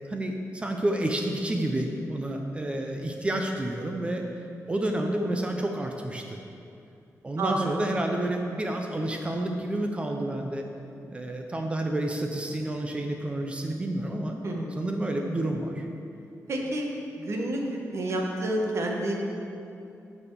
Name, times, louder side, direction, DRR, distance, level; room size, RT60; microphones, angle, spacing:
voice 1, 0.0-4.2 4.7-6.4 7.2-10.6 11.1-14.4 14.8-15.9, right 1 dB, 20° right, 2 dB, 0.5 m, -29 dB
voice 2, 7.4-7.7 14.4-14.8 16.5-16.9 17.1-19.1, right 1 dB, 55° right, 0 dB, 1.1 m, -29 dB
8.6 x 4.2 x 7.0 m, 2.6 s
wide cardioid pair, 165°, 6 cm